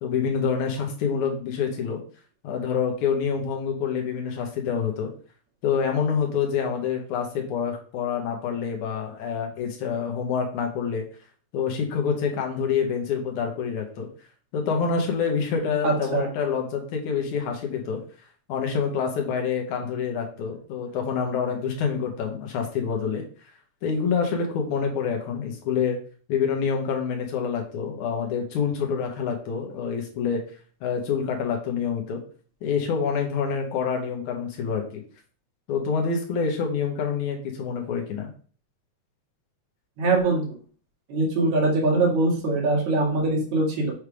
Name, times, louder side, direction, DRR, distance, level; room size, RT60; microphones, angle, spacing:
voice 1, 0.0-2.0 2.4-5.1 5.6-11.1 11.5-14.1 14.5-18.0 18.5-23.2 23.8-26.0 26.3-30.4 30.8-32.2 32.6-35.0 35.7-38.3, left 6 dB, 80° left, 2 dB, 2.7 m, -27 dB
voice 2, 15.8-16.3 40.0-40.6 41.1-43.9, right 2 dB, 75° right, -2 dB, 3.3 m, -22 dB
7.3 x 3.5 x 4.8 m, 0.42 s
omnidirectional pair, 3.3 m